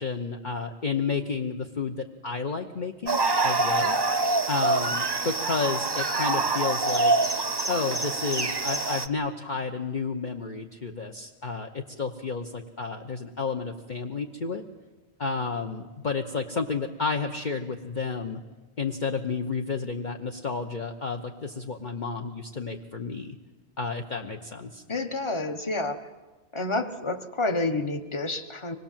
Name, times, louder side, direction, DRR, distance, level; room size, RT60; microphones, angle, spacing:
voice 1, 0.0-4.0 4.5-7.1 7.7-14.6 15.2-18.4 18.8-23.4 23.8-24.8, left 4 dB, 45° left, 3 dB, 1.1 m, -31 dB
sound 1, 3.1-9.1, right 3 dB, 25° right, 0.6 m, -25 dB
voice 2, 24.9-26.1 26.5-28.7, left 2 dB, 25° left, 7 dB, 1.3 m, -29 dB
25.0 x 20.0 x 7.4 m, 1.3 s
omnidirectional pair, 1.1 m